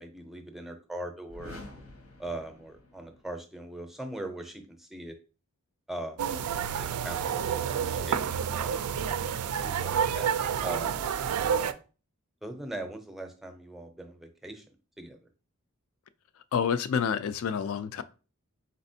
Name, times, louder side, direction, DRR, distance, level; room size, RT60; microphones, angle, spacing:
voice 1, 0.0-1.6 2.2-5.2 5.9-6.4 6.6-8.8 9.6-10.3 10.6-11.1 12.4-14.6 15.0-15.2, right 1 dB, ahead, 0.5 m, -40 dB
sound 1, 1.3-3.3, left 1 dB, 85° left, 0.9 m, -48 dB
sound 2, 6.2-11.7, right 8 dB, 90° right, 0.4 m, -29 dB
voice 2, 16.5-18.0, left 7 dB, 65° left, 0.3 m, -28 dB
4.2 x 4.0 x 2.7 m
head